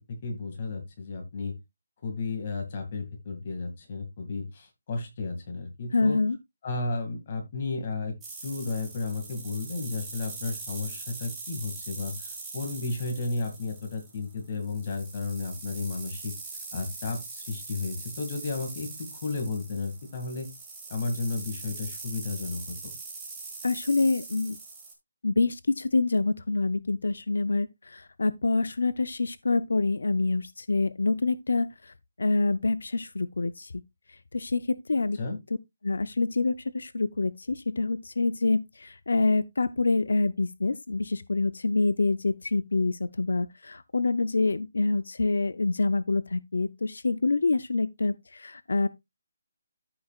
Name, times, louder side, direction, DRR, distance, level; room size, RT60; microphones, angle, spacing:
voice 1, 0.2-1.5 2.0-6.2 6.6-8.1 8.4-16.3 16.7-20.5 20.9-22.9 35.2-35.4, left 3 dB, 25° left, 2.0 m, -33 dB
voice 2, 5.9-6.4 23.6-24.6 25.2-33.7 34.3-35.2 35.8-48.9, left 3 dB, 80° left, 0.6 m, -26 dB
sound 1, 8.2-24.9, right 3 dB, 5° right, 1.8 m, -42 dB
14.0 x 5.8 x 2.4 m
hypercardioid pair, 180°, 0 cm